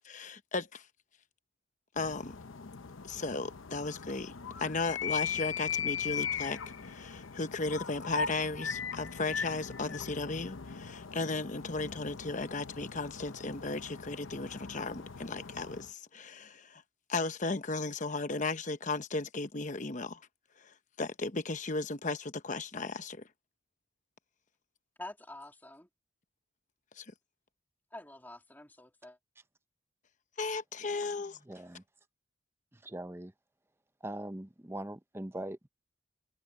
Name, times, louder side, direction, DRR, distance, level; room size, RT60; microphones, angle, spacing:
voice 1, 0.0-0.8 2.0-2.3 3.0-4.3 4.6-6.6 6.8-16.8 17.1-20.2 20.6-23.2 27.0-27.1 30.4-31.4, left 3 dB, 40° left, 1.0 m, -35 dB
sound 1, 2.0-15.9, left 6 dB, 80° left, 0.8 m, -39 dB
voice 2, 25.0-25.9 27.9-29.2, left 1 dB, 10° left, 2.7 m, -47 dB
voice 3, 31.4-31.8 32.7-33.3 34.0-35.7, right 1 dB, 10° right, 0.7 m, -41 dB
head